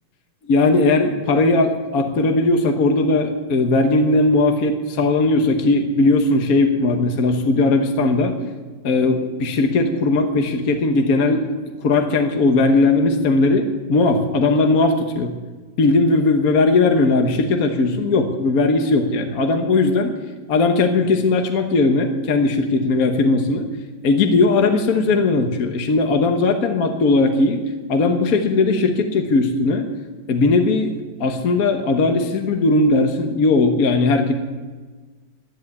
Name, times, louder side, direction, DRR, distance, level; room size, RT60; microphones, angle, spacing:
voice 1, 0.5-8.4 8.8-11.5 11.8-15.3 15.8-20.1 20.5-23.7 24.0-27.6 27.9-29.9 30.3-30.9 31.2-34.3, left 3 dB, 55° left, 4 dB, 1.6 m, -18 dB
13.0 x 11.0 x 8.3 m, 1.4 s
omnidirectional pair, 2.0 m